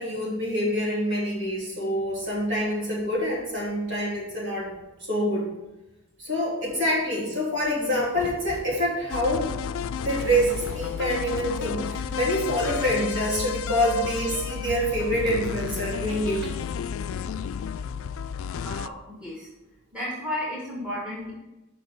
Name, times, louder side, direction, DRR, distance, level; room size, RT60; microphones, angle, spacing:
voice 1, 0.0-4.7 5.1-5.5 6.2-9.5 10.0-16.5, equal, 60° right, -5 dB, 3.1 m, -26 dB
sound 1, 7.9-9.1 9.7-11.2 12.0-13.2 14.1-14.4, left 1 dB, 30° right, 2.2 m, -43 dB
sound 2, 9.1-18.9, left 7 dB, 70° left, 0.3 m, -32 dB
voice 2, 18.6-19.5 19.9-21.3, left 1 dB, 5° right, -5 dB, 2.0 m, -33 dB
6.8 x 5.4 x 5.9 m, 0.99 s
head